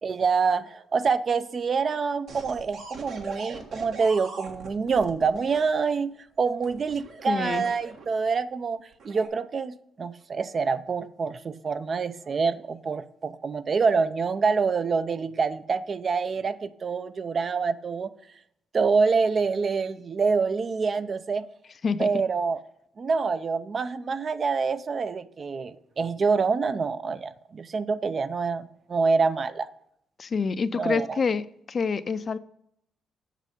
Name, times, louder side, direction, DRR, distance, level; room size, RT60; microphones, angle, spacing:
voice 1, 0.0-6.1 6.4-18.1 18.7-21.4 22.0-22.6 23.0-29.7 30.7-31.2, right 5 dB, 45° right, 0.5 m, -26 dB
sound 1, 2.3-5.6 6.6-8.3 8.9-9.3, right 4 dB, 70° right, 1.6 m, -42 dB
voice 2, 7.3-7.6 21.8-22.1 30.2-31.4 31.7-32.4, left 5 dB, 40° left, 0.5 m, -26 dB
7.5 x 6.5 x 5.2 m
cardioid pair, 90°, 0 cm